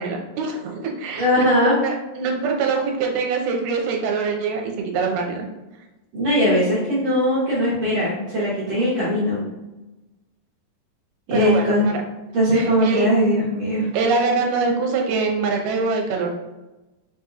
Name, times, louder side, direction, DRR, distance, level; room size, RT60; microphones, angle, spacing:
voice 1, 0.0-1.4 1.8-5.5 11.3-12.0 12.5-13.1 13.9-16.3, right 4 dB, 80° right, 1 dB, 2.3 m, -24 dB
voice 2, 1.2-1.8 6.1-9.4 11.3-11.8 12.3-13.9, equal, 65° right, -9 dB, 1.9 m, -20 dB
5.5 x 2.8 x 2.4 m, 1.0 s
omnidirectional pair, 3.8 m